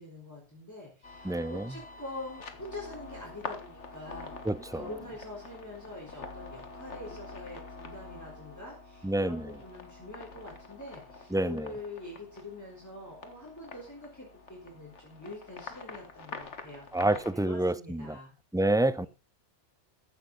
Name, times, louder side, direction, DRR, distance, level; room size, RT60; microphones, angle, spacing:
voice 1, 0.0-4.3 4.7-18.3 18.9-19.1, left 2 dB, 15° left, 4.1 m, -45 dB
sound 1, 1.0-17.3, left 4 dB, 85° left, 1.8 m, -46 dB
voice 2, 1.2-1.7 4.5-4.8 9.0-9.5 11.3-11.7 16.9-18.2 18.5-19.1, right 1 dB, 5° right, 0.3 m, -28 dB
15.0 x 11.0 x 4.0 m
omnidirectional pair, 1.2 m